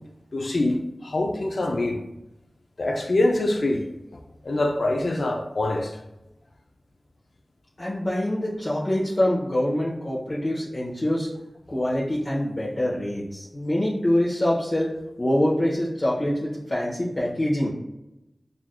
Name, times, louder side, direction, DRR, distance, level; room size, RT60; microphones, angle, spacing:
voice 1, 0.3-2.0 2.8-3.8 4.1-6.0, left 2 dB, 70° left, 0.4 m, -25 dB
voice 2, 7.8-11.3 11.7-14.9 15.2-17.7, left 1 dB, 50° left, 0.9 m, -25 dB
5.8 x 2.5 x 2.2 m
wide cardioid pair, 50°, 0 cm